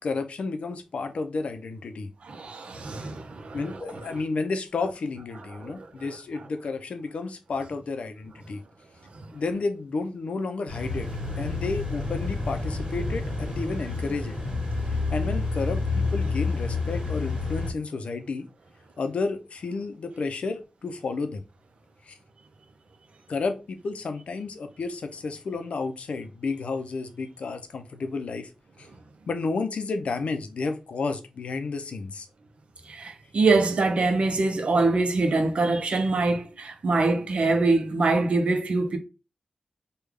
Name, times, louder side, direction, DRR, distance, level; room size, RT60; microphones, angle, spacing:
voice 1, 0.0-2.1 3.5-8.6 9.3-11.1 11.4-14.4 15.1-18.5 19.0-21.4 22.1-22.2 23.3-28.5 28.8-28.9 29.3-32.3, left 4 dB, 80° left, 0.5 m, -31 dB
voice 2, 2.2-3.8 5.6-5.9 32.9-39.0, right 3 dB, 70° right, 0.6 m, -24 dB
sound 1, 10.7-17.7, left 3 dB, 50° right, 1.6 m, -29 dB
3.2 x 2.3 x 3.4 m
cardioid pair, 65°, 2 cm